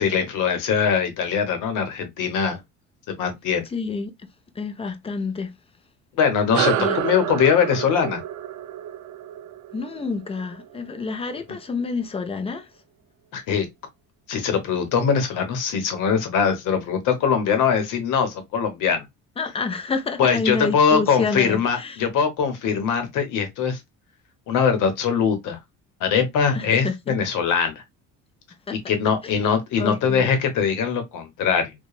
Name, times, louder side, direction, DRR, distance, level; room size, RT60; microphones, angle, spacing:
voice 1, 0.0-2.6 3.1-3.6 6.2-8.2 13.3-13.7 14.3-19.0 20.2-23.8 24.5-25.6 26.0-27.8 28.7-31.7, left 6 dB, 70° left, 0.9 m, -22 dB
voice 2, 3.7-4.1 4.6-5.5 6.8-7.0 9.7-12.7 19.4-22.0 26.5-27.1 28.7-28.8 29.2-29.5 29.8-30.3, left 4 dB, 20° left, 0.5 m, -28 dB
sound 1, 6.5-11.4, right 11 dB, 60° right, 0.4 m, -29 dB
2.9 x 2.2 x 2.3 m
cardioid pair, 100°, 33 cm